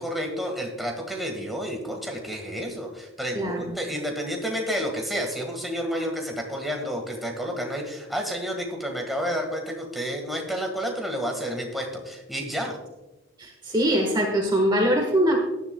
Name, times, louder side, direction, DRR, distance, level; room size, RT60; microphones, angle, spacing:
voice 1, 0.0-12.8, equal, ahead, 1 dB, 1.6 m, -30 dB
voice 2, 3.3-3.8 13.4-15.4, equal, 20° right, 2 dB, 1.3 m, -23 dB
18.0 x 11.0 x 2.3 m, 1.0 s
head